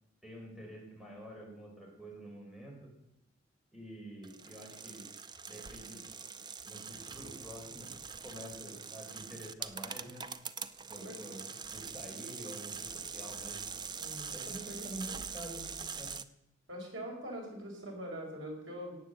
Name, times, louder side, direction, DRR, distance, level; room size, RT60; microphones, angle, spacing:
voice 1, 0.2-2.9 3.7-5.0 5.5-6.0 6.7-7.9 8.2-10.2 10.9-12.9 13.1-13.7 14.3-15.7 16.0-16.1, right 1 dB, ahead, -1 dB, 4.5 m, -47 dB
sound 1, 4.2-16.2, right 6 dB, 25° right, 0.6 m, -43 dB
voice 2, 14.0-14.3 14.7-14.8 16.7-19.0, equal, 80° right, 0 dB, 4.9 m, -43 dB
16.5 x 8.6 x 8.0 m, 0.85 s
head